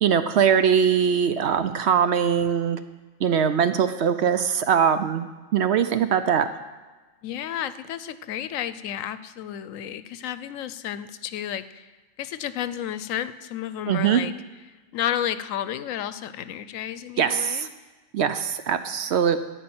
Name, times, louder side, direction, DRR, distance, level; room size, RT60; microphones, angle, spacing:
voice 1, 0.0-2.8 3.2-6.5 13.9-14.2 17.2-17.7 18.1-19.4, right 8 dB, 60° right, 10 dB, 0.8 m, -22 dB
voice 2, 7.2-11.9 12.2-14.3 14.9-17.7, left 10 dB, 80° left, 14 dB, 1.0 m, -31 dB
14.0 x 5.3 x 8.6 m, 1.3 s
omnidirectional pair, 1.4 m